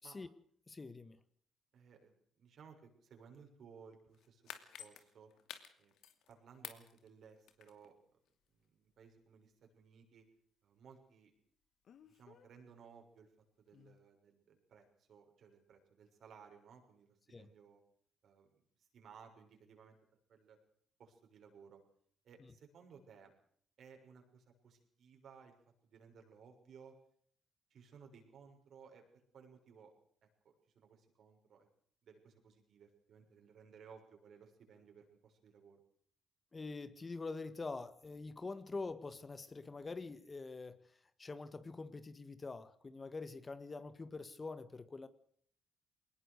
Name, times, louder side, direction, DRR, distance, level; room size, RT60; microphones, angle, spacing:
voice 1, 0.7-1.2 17.3-17.5 22.4-22.5 36.5-40.8 41.2-45.1, left 3 dB, 30° left, 13 dB, 1.6 m, -45 dB
voice 2, 1.7-5.3 5.8-5.9 6.3-7.9 8.5-10.2 10.6-11.3 12.0-13.3 13.6-17.8 18.2-20.0 20.3-20.6 21.0-21.8 22.2-23.3 23.8-25.5 25.8-27.0 27.7-29.9 30.2-31.7 32.0-35.8, right 6 dB, 65° right, 3 dB, 6.6 m, -60 dB
sound 1, 4.1-6.3 6.6-7.9 8.3-8.4, left 9 dB, 80° left, 2.6 m, -51 dB
Speech, 6.5-6.6 11.8-12.5 13.7-14.0, left 8 dB, 60° left, 1.5 m, -62 dB
22.0 x 19.5 x 6.6 m, 0.62 s
cardioid pair, 90°, 0 cm